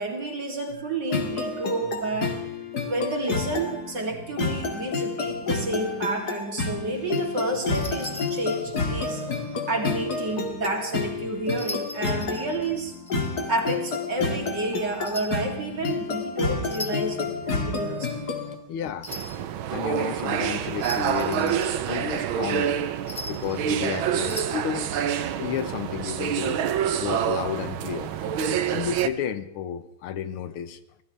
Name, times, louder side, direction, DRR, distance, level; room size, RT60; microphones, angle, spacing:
voice 1, 0.0-2.5 2.8-9.2 9.7-12.9 13.5-18.1, right 2 dB, 55° right, 1 dB, 3.6 m, -30 dB
sound 1, 1.1-18.5, left 3 dB, 45° left, 2.7 m, -30 dB
sound 2, 7.7-9.2 11.5-13.4 15.0-15.4 16.6-17.2 19.0-19.4 20.8-22.0 23.1-23.6 24.2-24.4, left 2 dB, 15° left, 0.9 m, -39 dB
voice 2, 18.7-19.1 19.7-22.7 23.3-25.0 25.4-26.7 26.9-28.1 28.7-30.8, left 9 dB, 80° left, 12 dB, 1.9 m, -32 dB
sound 3, 19.1-29.1, right 9 dB, 70° right, 1.7 m, -27 dB
24.0 x 17.0 x 3.4 m, 0.80 s
omnidirectional pair, 2.4 m